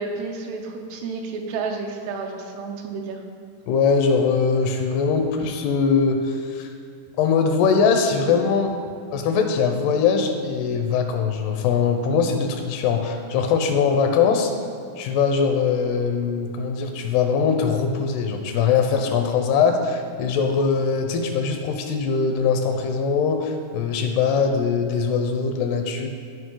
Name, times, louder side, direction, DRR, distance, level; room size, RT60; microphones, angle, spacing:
voice 1, 0.0-3.2, right 4 dB, 90° right, 2 dB, 3.0 m, -31 dB
voice 2, 3.7-6.7 7.2-8.8 9.1-14.5 15.0-26.1, left 5 dB, 85° left, 5 dB, 2.8 m, -21 dB
14.0 x 5.1 x 3.9 m, 2.2 s
omnidirectional pair, 4.6 m